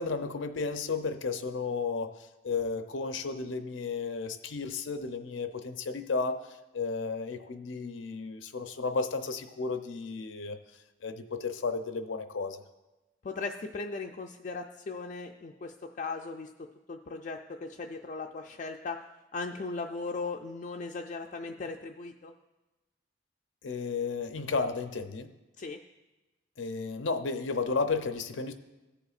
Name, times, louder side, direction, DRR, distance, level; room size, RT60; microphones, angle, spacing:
voice 1, 0.0-2.1 2.4-10.6 11.0-12.6 23.6-25.3 26.6-28.5, left 4 dB, 90° left, 8 dB, 0.6 m, -33 dB
voice 2, 13.2-19.0 19.3-22.3 25.6-25.8, left 3 dB, 40° left, 2 dB, 0.3 m, -38 dB
15.5 x 6.9 x 2.4 m, 1.1 s
head